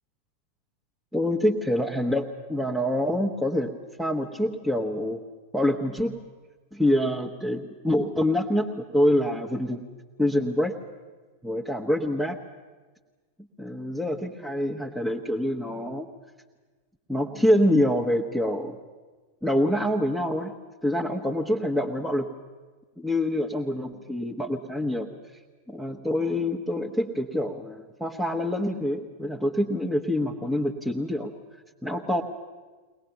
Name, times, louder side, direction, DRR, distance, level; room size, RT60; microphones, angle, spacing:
voice 1, 1.1-3.7 4.0-5.2 5.5-6.1 6.7-9.8 10.2-10.7 11.4-12.4 13.6-16.1 17.1-18.8 19.4-20.5 20.8-22.3 23.0-25.1 25.7-31.3 31.8-32.2, left 1 dB, ahead, -2 dB, 1.2 m, -26 dB
23.0 x 18.5 x 8.9 m, 1.3 s
figure-of-eight pair, 90°, 0 cm